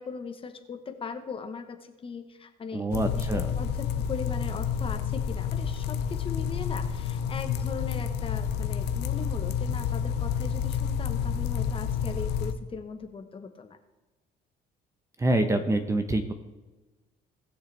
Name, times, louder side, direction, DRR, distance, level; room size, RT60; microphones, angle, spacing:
voice 1, 0.0-3.7 4.0-13.8, left 5 dB, 30° left, 7 dB, 1.0 m, -39 dB
voice 2, 2.7-3.5 15.2-16.3, right 1 dB, 15° right, 7 dB, 0.9 m, -26 dB
sound 1, 2.9-12.5, left 7 dB, 85° left, 0.7 m, -29 dB
18.5 x 6.6 x 3.4 m, 1.2 s
cardioid pair, 110°, 17 cm